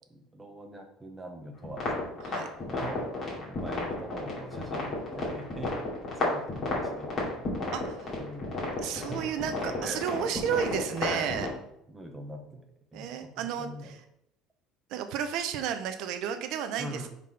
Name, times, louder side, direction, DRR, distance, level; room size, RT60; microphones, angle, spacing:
voice 1, 0.1-2.0 2.7-3.0 3.3-7.5 8.1-8.5 8.9-9.2 9.8-10.0 10.3-10.6 11.0-11.4 11.9-12.7 12.9-13.9 16.8-17.1, right 1 dB, 10° right, 2 dB, 0.8 m, -42 dB
sound 1, 1.6-11.5, left 2 dB, 30° left, 2.4 m, -33 dB
voice 2, 7.7-8.2 8.8-11.5 12.9-14.0 14.9-17.1, right 8 dB, 60° right, 8 dB, 0.6 m, -32 dB
5.3 x 4.1 x 5.4 m, 0.76 s
cardioid pair, 165°, 0 cm